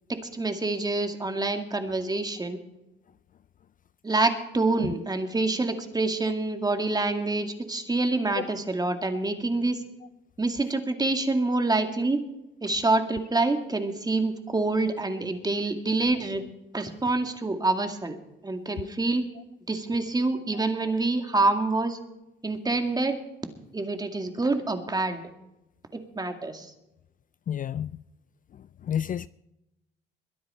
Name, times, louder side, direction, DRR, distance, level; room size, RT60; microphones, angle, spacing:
voice 1, 0.1-2.6 4.0-9.8 10.4-12.2 12.6-16.4 16.7-18.2 18.4-19.2 19.7-22.0 22.4-23.2 23.7-25.2 25.9-26.7, right 2 dB, 20° right, 2.2 m, -26 dB
voice 2, 27.5-27.9 28.8-29.3, left 9 dB, 45° left, 0.4 m, -30 dB
22.0 x 10.5 x 4.4 m
cardioid pair, 90°, 20 cm